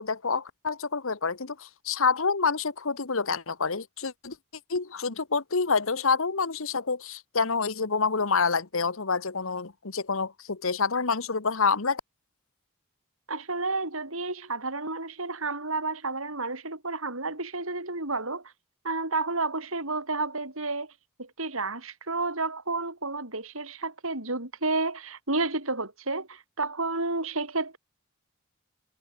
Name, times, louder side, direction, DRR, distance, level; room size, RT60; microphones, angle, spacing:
voice 1, 0.0-4.4 4.7-12.0, left 4 dB, 70° left, 1.2 m, -27 dB
voice 2, 13.3-18.4 18.8-20.9 21.2-27.8, right 3 dB, 70° right, 6.6 m, -31 dB
head